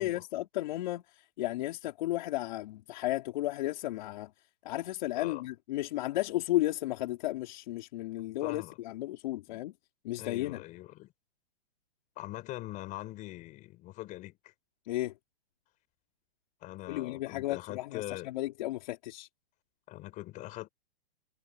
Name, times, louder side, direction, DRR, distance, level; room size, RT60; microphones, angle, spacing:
voice 1, 0.0-4.3 4.6-9.7 10.0-10.6 14.9-15.1 16.9-19.3, left 16 dB, 50° left, 4.3 m, -34 dB
voice 2, 8.4-8.8 9.5-9.6 10.2-11.1 12.2-14.5 16.6-18.3 19.9-20.7, left 17 dB, 25° left, 4.8 m, -42 dB
hypercardioid pair, 155°, 30 cm